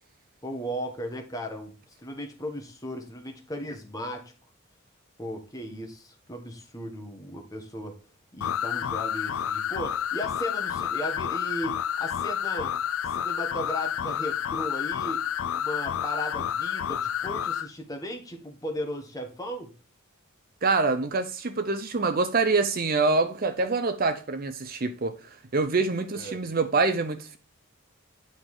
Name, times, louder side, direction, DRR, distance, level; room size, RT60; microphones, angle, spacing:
voice 1, 0.4-4.3 5.2-8.0 8.3-12.8 13.0-15.3 15.5-19.7 26.1-26.4, equal, 15° left, 1.3 m, -36 dB
sound 1, 8.4-17.7, left 9 dB, 75° left, 0.4 m, -30 dB
voice 2, 20.6-25.2 25.5-27.4, right 3 dB, 40° right, 0.6 m, -25 dB
9.3 x 3.8 x 4.8 m
head